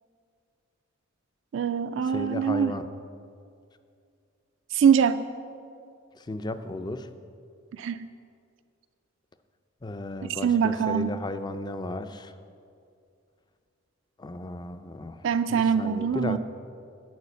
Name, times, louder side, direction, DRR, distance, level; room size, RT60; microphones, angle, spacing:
voice 1, 1.5-2.7 4.7-5.2 7.8-8.1 10.4-11.2 15.2-16.4, right 7 dB, 70° right, 10 dB, 0.3 m, -23 dB
voice 2, 2.0-2.8 6.2-7.1 9.8-12.3 14.2-16.4, left 2 dB, 20° left, 10 dB, 0.4 m, -35 dB
10.5 x 5.0 x 8.3 m, 2.4 s
head